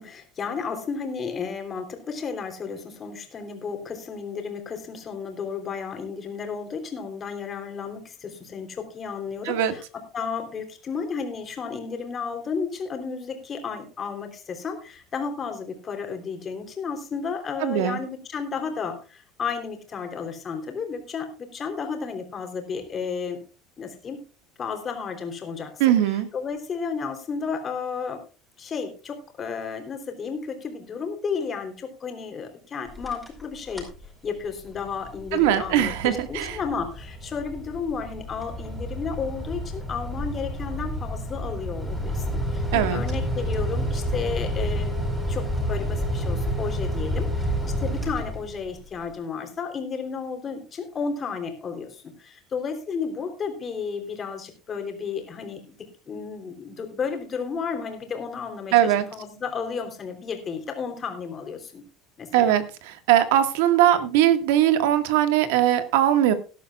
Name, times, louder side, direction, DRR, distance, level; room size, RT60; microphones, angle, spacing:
voice 1, 0.0-23.4 23.8-24.2 24.6-28.2 28.6-33.8 34.2-44.9 45.3-61.8 62.2-62.5, left 5 dB, 30° left, 5 dB, 3.4 m, -33 dB
voice 2, 17.6-18.0 25.8-26.3 35.3-36.6 42.7-43.0 58.7-59.1 62.3-66.3, right 11 dB, 85° right, 9 dB, 1.8 m, -20 dB
sound 1, 32.9-33.4 33.7-34.0 34.5-48.8, equal, 5° right, 4.7 m, -29 dB
18.5 x 11.5 x 2.4 m, 0.33 s
cardioid pair, 140°, 0 cm